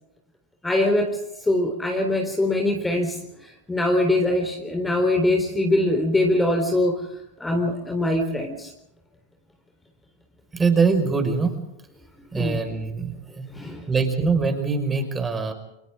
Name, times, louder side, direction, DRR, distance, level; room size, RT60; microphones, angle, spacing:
voice 1, 0.6-1.1 1.5-3.2 3.7-7.0 7.4-8.7 12.3-12.6 13.5-13.9, left 1 dB, 10° left, 3 dB, 4.0 m, -22 dB
voice 2, 10.5-11.5 12.3-13.5 13.9-15.5, right 4 dB, 15° right, 6 dB, 5.3 m, -23 dB
30.0 x 29.5 x 3.8 m, 0.86 s
figure-of-eight pair, 90°, 0 cm